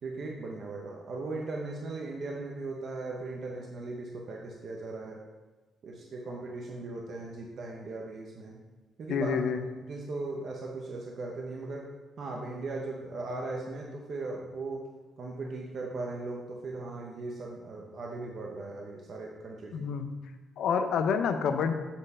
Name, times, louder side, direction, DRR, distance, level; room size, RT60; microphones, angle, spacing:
voice 1, 0.0-5.2 5.8-8.6 9.0-9.4 9.8-11.9 12.2-14.8 15.2-19.9, right 3 dB, 55° right, -1 dB, 0.8 m, -38 dB
voice 2, 9.1-9.6 19.7-20.1 20.6-21.7, left 6 dB, 75° left, 7 dB, 0.6 m, -28 dB
7.1 x 3.3 x 5.4 m, 1.2 s
cardioid pair, 90°, 0 cm